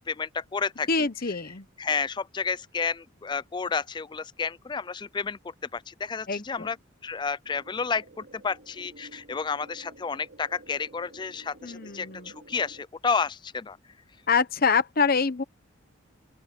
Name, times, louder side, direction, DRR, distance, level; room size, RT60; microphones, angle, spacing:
voice 1, 0.0-1.1 1.8-6.8 7.0-13.8, left 5 dB, 20° left, 0.3 m, -31 dB
voice 2, 0.9-1.7 6.3-6.7 11.6-12.3 14.3-15.4, left 5 dB, 45° left, 0.9 m, -25 dB
sound 1, 7.4-12.9, right 2 dB, 55° right, 2.9 m, -52 dB
open air
head